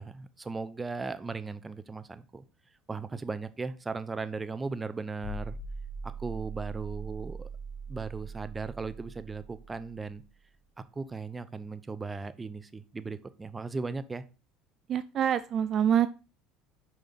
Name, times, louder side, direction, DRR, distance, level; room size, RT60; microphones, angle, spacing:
voice 1, 0.0-2.4 2.9-5.6 6.0-7.5 7.9-10.2 10.8-14.2, right 4 dB, 20° right, 13 dB, 0.7 m, -37 dB
sound 1, 5.2-10.3, right 3 dB, 60° left, 3.0 m, -41 dB
voice 2, 14.9-16.1, right 9 dB, 45° right, 13 dB, 0.4 m, -25 dB
6.9 x 4.9 x 4.1 m, 0.33 s
supercardioid pair, 90°, 0 cm